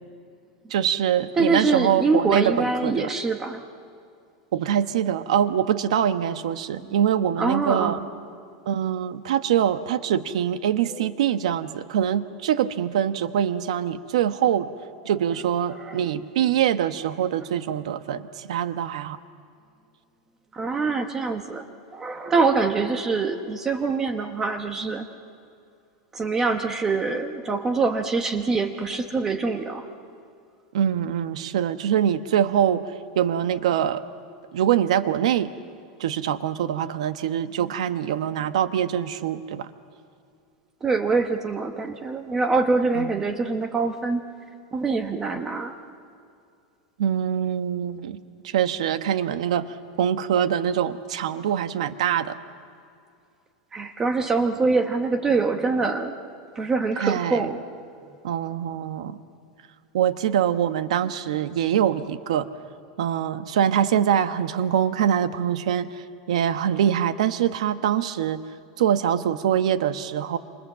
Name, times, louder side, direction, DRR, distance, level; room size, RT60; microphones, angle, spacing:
voice 1, 0.7-3.1 4.5-8.0 8.7-14.7 15.0-19.2 30.7-32.8 33.1-34.0 34.5-35.5 36.0-39.7 42.9-43.1 47.0-52.4 57.0-57.5 58.2-59.2 59.9-62.5 63.0-68.4 68.8-70.4, right 9 dB, 80° right, 11 dB, 1.1 m, -24 dB
voice 2, 1.4-3.6 6.7-6.9 7.4-8.1 15.8-16.0 20.5-21.6 21.9-25.1 26.1-29.8 40.8-44.2 44.7-45.7 53.7-56.1 56.6-57.6, right 4 dB, 10° right, 6 dB, 0.9 m, -24 dB
27.5 x 26.5 x 7.5 m, 2.4 s
supercardioid pair, 180°, 3 cm